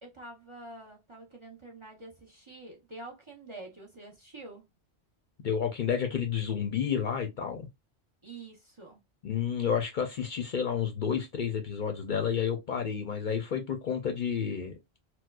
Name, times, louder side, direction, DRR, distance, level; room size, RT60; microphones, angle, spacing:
voice 1, 0.0-4.6 8.2-9.0, right 2 dB, 30° right, 0.6 m, -47 dB
voice 2, 5.4-7.7 9.2-14.8, left 7 dB, 55° left, 0.6 m, -30 dB
4.5 x 2.1 x 2.3 m
omnidirectional pair, 1.1 m